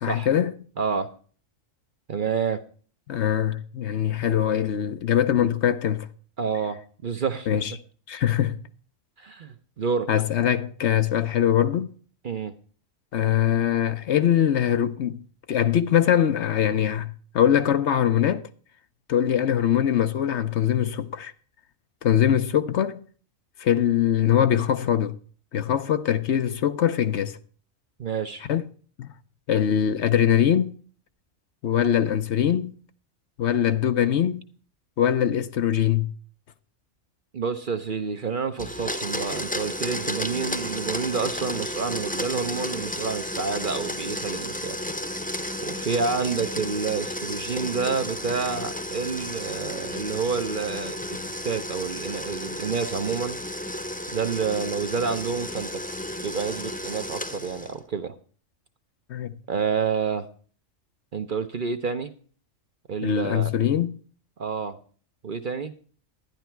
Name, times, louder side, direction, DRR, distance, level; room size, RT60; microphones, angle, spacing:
voice 1, 0.0-0.5 3.1-6.1 7.5-7.7 8.1-8.6 10.1-11.9 13.1-15.2 15.5-17.1 17.3-18.4 19.1-21.3 22.0-23.0 23.6-25.1 25.5-27.4 28.5-28.6 29.0-29.1 29.5-30.8 31.6-32.8 33.4-34.4 35.0-36.1 59.1-59.3 63.0-63.9, left 10 dB, 65° left, 1.0 m, -22 dB
voice 2, 0.8-1.1 2.1-2.6 6.4-7.6 9.2-10.1 12.2-12.5 28.0-28.4 37.3-44.8 45.6-51.0 51.4-53.4 54.1-55.8 56.2-58.1 59.5-60.3 61.1-62.1 62.9-63.5 64.4-64.8 65.2-65.7, right 5 dB, 45° right, 0.8 m, -28 dB
Domestic sounds home sounds, 38.6-57.8, left 1 dB, 5° left, 0.8 m, -33 dB
12.0 x 10.5 x 4.5 m
omnidirectional pair, 1.3 m